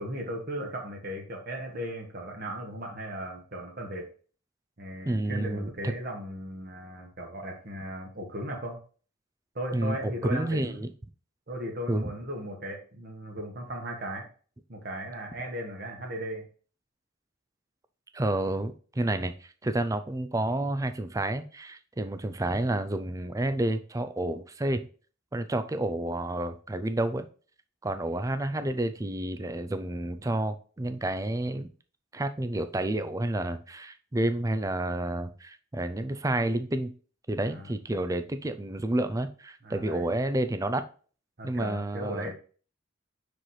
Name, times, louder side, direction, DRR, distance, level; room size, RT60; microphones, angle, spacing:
voice 1, 0.0-4.1 4.8-8.8 9.5-10.9 11.5-14.3 14.7-16.5 37.5-37.7 39.6-40.1 41.4-42.3, equal, 50° right, 1 dB, 1.3 m, -37 dB
voice 2, 5.1-5.7 9.7-10.0 10.2-10.9 11.9-12.1 18.1-24.9 25.3-27.3 27.8-31.7 32.1-36.9 37.3-40.8 41.4-42.3, right 1 dB, 15° right, 10 dB, 0.4 m, -30 dB
5.8 x 5.1 x 3.2 m, 0.39 s
head